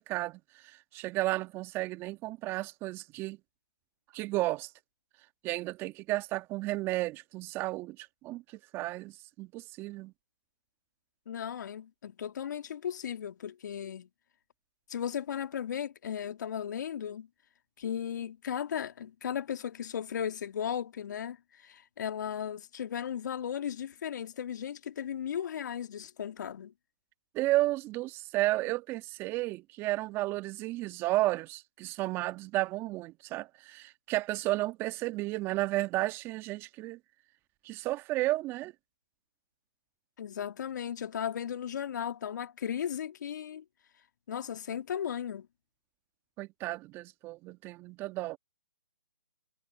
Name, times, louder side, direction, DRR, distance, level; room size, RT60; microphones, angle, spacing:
voice 1, 0.0-3.4 4.1-4.7 5.4-10.1 27.3-37.0 37.6-38.7 46.4-48.4, right 18 dB, 20° right, 1.4 m, -33 dB
voice 2, 11.3-14.1 14.9-17.3 17.8-26.7 40.2-43.6 44.3-45.5, left 9 dB, 50° left, 1.8 m, -36 dB
figure-of-eight pair, 145°, 12 cm